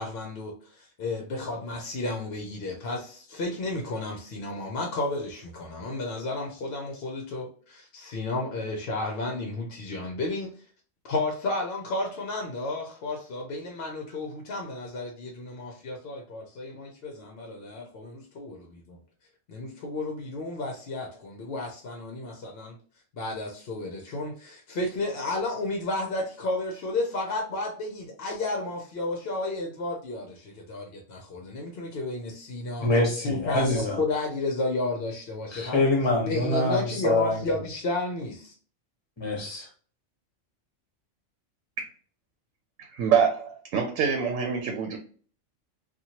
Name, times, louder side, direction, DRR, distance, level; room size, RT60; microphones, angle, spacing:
voice 1, 0.0-10.5 11.0-19.0 19.5-22.7 23.1-32.9 33.2-35.8 36.3-38.5, left 2 dB, 60° left, 1 dB, 0.8 m, -32 dB
voice 2, 32.8-34.0 35.5-37.5 39.2-39.7, left 2 dB, 25° left, -1 dB, 1.0 m, -25 dB
voice 3, 42.9-45.0, right 7 dB, 85° right, 3 dB, 1.0 m, -25 dB
2.8 x 2.4 x 2.8 m, 0.44 s
omnidirectional pair, 1.3 m